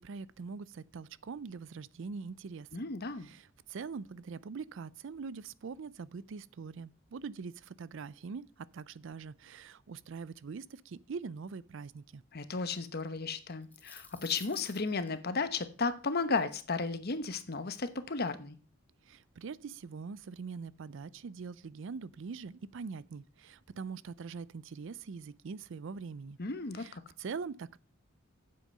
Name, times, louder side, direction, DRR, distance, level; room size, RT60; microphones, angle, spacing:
voice 1, 0.0-2.9 3.2-12.2 19.0-26.4 26.8-27.8, right 5 dB, 65° right, 0.4 m, -43 dB
voice 2, 2.7-3.3 12.3-18.6 26.4-27.0, left 4 dB, 50° left, 1.0 m, -34 dB
sound 1, 13.6-15.1, left 3 dB, 10° left, 1.3 m, -52 dB
9.0 x 7.7 x 5.5 m
head